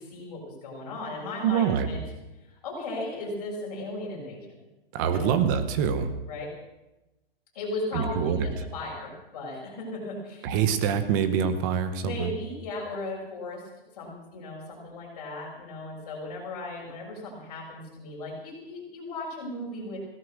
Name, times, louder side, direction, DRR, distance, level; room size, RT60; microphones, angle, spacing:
voice 1, 0.0-2.0 2.5-4.5 5.0-5.3 6.3-6.5 7.5-10.6 12.0-13.6 14.0-20.0, left 2 dB, 40° left, -2 dB, 6.5 m, -36 dB
voice 2, 1.4-1.9 4.9-6.1 7.9-8.5 10.4-12.3, right 7 dB, 20° right, 10 dB, 0.9 m, -25 dB
17.0 x 13.0 x 6.4 m, 1.0 s
hypercardioid pair, 170°, 30 cm